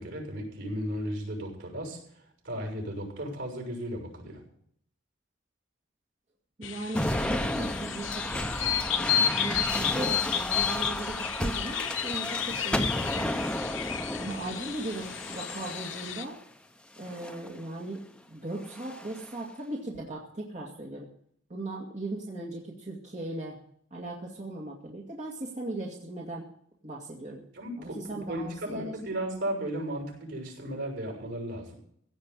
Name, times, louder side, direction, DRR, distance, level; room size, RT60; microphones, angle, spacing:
voice 1, 0.0-2.0 2.4-4.4 27.5-28.0 28.3-31.7, right 1 dB, 75° right, 2 dB, 6.6 m, -35 dB
sound 1, 6.6-16.2, left 9 dB, 75° left, 1.0 m, -32 dB
voice 2, 6.6-13.6 14.2-16.4 17.0-18.0 18.3-21.1 21.5-23.6 23.9-26.4 26.8-27.4 27.8-28.9, right 2 dB, 35° right, -3 dB, 2.1 m, -38 dB
sound 2, 6.9-16.3 17.0-17.5 18.6-19.3, left 1 dB, 5° left, 0.8 m, -33 dB
16.5 x 5.8 x 9.8 m, 0.65 s
head